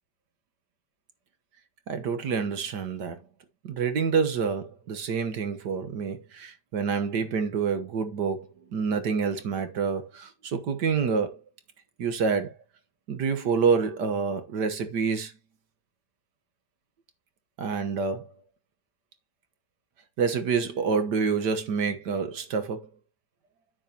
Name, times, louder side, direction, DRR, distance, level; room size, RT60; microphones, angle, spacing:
voice 1, 1.9-3.2 3.6-11.4 12.0-12.5 13.1-15.3 17.6-18.3 20.2-22.9, right 5 dB, 55° right, 1.6 m, -27 dB
9.5 x 7.6 x 2.8 m
omnidirectional pair, 2.3 m